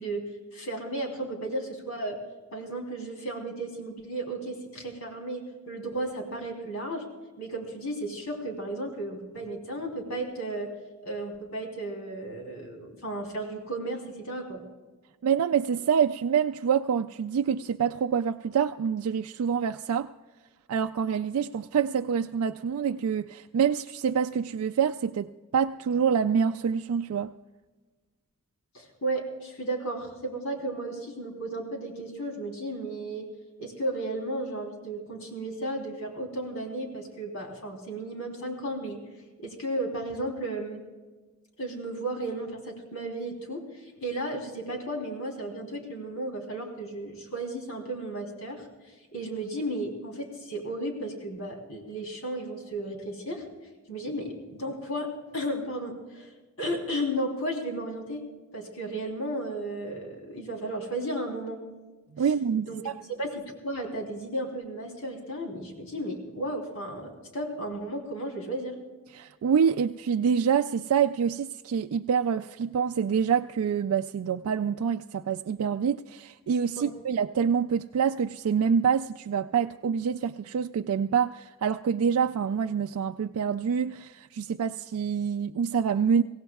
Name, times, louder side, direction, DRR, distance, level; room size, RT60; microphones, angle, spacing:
voice 1, 0.0-2.2 2.5-7.1 7.4-10.7 11.0-14.6 28.7-33.3 33.6-39.0 39.4-40.8 41.6-48.7 49.1-53.4 53.9-56.3 56.6-58.2 58.5-61.6 62.6-62.8 63.1-68.8 76.8-76.9, right 1 dB, 85° left, 3.5 m, -34 dB
voice 2, 15.2-20.1 20.7-27.3 62.2-63.0 69.1-86.2, right 7 dB, 90° right, 0.4 m, -26 dB
24.0 x 17.0 x 2.3 m
head